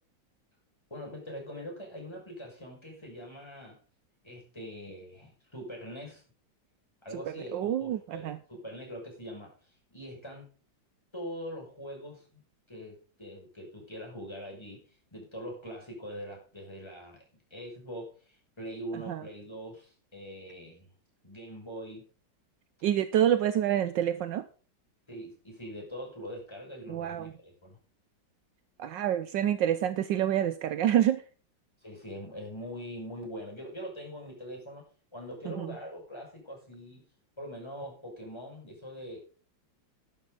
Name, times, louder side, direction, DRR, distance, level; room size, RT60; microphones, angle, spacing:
voice 1, 0.9-3.8 4.2-6.2 7.0-10.5 11.1-14.8 15.1-17.2 17.5-20.9 21.2-22.1 25.1-27.8 31.8-37.1 37.4-39.2, equal, 15° left, -1 dB, 6.1 m, -43 dB
voice 2, 7.3-8.4 18.9-19.2 22.8-24.5 26.9-27.3 28.8-31.2 35.6-35.7, right 10 dB, 75° right, 12 dB, 1.4 m, -27 dB
12.5 x 11.5 x 4.0 m, 0.36 s
omnidirectional pair, 2.1 m